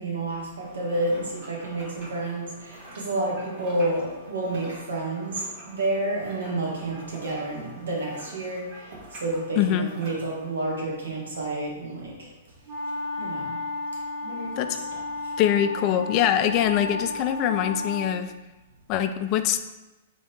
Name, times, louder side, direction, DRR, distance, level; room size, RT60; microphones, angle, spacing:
voice 1, 0.0-12.3 13.2-13.6 14.2-15.0 15.2-15.3, right 2 dB, 80° right, -3 dB, 1.5 m, -30 dB
sound 1, 0.6-10.5, right 1 dB, 45° right, 1.4 m, -46 dB
voice 2, 9.6-9.9 14.6-14.8 15.4-18.3 18.9-19.6, left 10 dB, 40° left, 9 dB, 0.3 m, -23 dB
sound 2, 12.7-18.2, left 3 dB, 30° right, 1.0 m, -33 dB
3.6 x 3.4 x 4.2 m, 1.1 s
hypercardioid pair, 120°, 0 cm